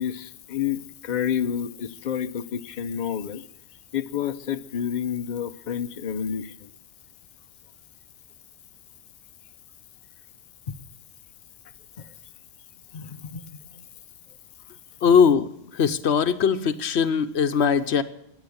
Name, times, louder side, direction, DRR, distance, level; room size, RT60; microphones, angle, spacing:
voice 1, 0.0-3.4 3.9-6.5 12.9-13.5, left 8 dB, 45° left, 10 dB, 0.8 m, -29 dB
voice 2, 15.0-18.0, left 6 dB, 80° left, 12 dB, 1.1 m, -20 dB
15.5 x 9.9 x 7.9 m, 0.81 s
omnidirectional pair, 1.1 m